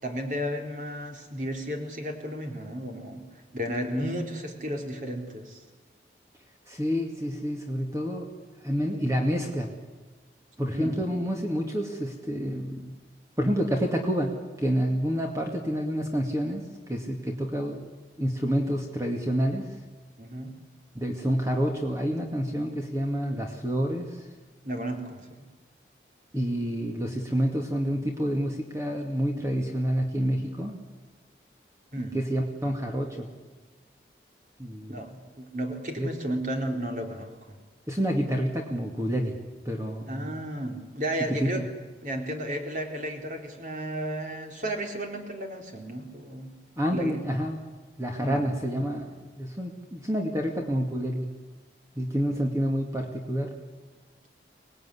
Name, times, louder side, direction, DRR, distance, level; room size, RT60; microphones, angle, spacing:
voice 1, 0.0-3.2 3.5-5.6 10.7-11.0 20.2-20.5 24.6-25.4 31.9-32.2 34.9-35.1 35.4-37.6 40.1-41.6 42.0-46.5 46.9-47.3 48.2-48.4, equal, 45° right, 3 dB, 3.9 m, -33 dB
voice 2, 6.7-8.3 8.6-9.7 10.6-12.9 13.4-17.9 18.2-19.8 20.9-24.3 26.3-30.8 32.1-33.3 34.6-35.0 36.0-36.1 37.9-39.4 39.7-40.4 41.4-41.6 46.8-47.6 48.0-51.3 52.0-53.6, equal, 15° right, 2 dB, 2.1 m, -28 dB
25.5 x 19.5 x 9.9 m, 1.3 s
head